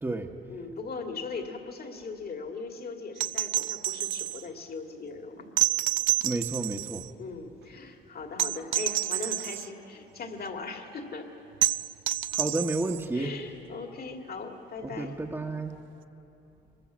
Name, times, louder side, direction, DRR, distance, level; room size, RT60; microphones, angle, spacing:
voice 1, 0.5-5.5 7.2-11.3 13.1-15.2, left 4 dB, 50° left, 3 dB, 2.3 m, -39 dB
sound 1, 3.2-4.4 5.6-7.1 8.4-9.7 11.6-13.1 14.9-15.0, right 15 dB, 75° right, 0.4 m, -29 dB
voice 2, 6.2-7.1 12.3-13.3 14.8-15.8, right 2 dB, 10° right, -1 dB, 1.2 m, -31 dB
23.5 x 20.5 x 7.4 m, 3.0 s
cardioid pair, 90°, 20 cm